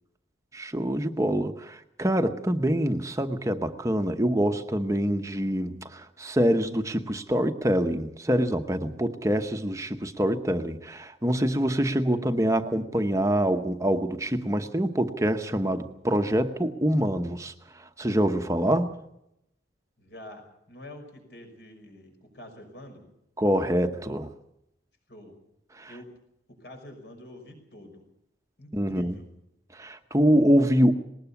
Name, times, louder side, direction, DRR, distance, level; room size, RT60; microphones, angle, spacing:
voice 1, 0.5-17.5 18.0-18.9 23.4-24.3 25.8-25.9 28.7-29.1 29.7-30.9, equal, 15° right, 6 dB, 0.9 m, -25 dB
voice 2, 20.0-23.1 25.1-25.4 25.9-26.1 26.5-28.1 28.6-29.3, left 1 dB, 65° left, 4 dB, 5.7 m, -46 dB
20.0 x 19.0 x 7.0 m, 0.81 s
head